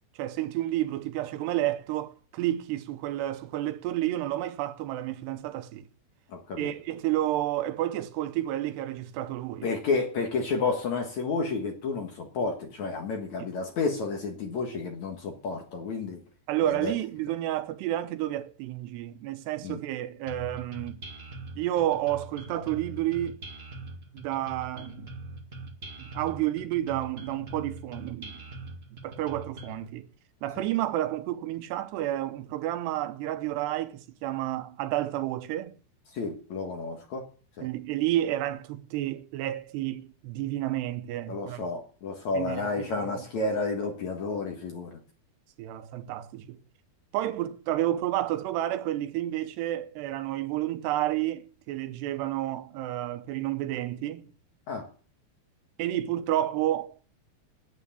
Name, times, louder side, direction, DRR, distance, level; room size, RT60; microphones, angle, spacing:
voice 1, 0.2-5.9 6.6-9.7 16.5-21.0 21.6-23.4 24.1-25.1 26.0-28.5 29.0-30.1 30.4-35.8 37.6-41.7 42.3-42.9 43.4-43.5 45.6-46.6 47.1-54.3 55.8-57.0, right 14 dB, 85° right, 3.0 m, -30 dB
voice 2, 6.3-6.7 9.6-16.2 16.7-16.9 19.6-19.8 36.1-37.2 37.6-37.7 41.3-45.0 54.7-54.9, left 4 dB, 55° left, 2.4 m, -31 dB
sound 1, 20.3-29.9, right 2 dB, 60° right, 0.6 m, -42 dB
9.6 x 9.5 x 8.3 m
omnidirectional pair, 4.8 m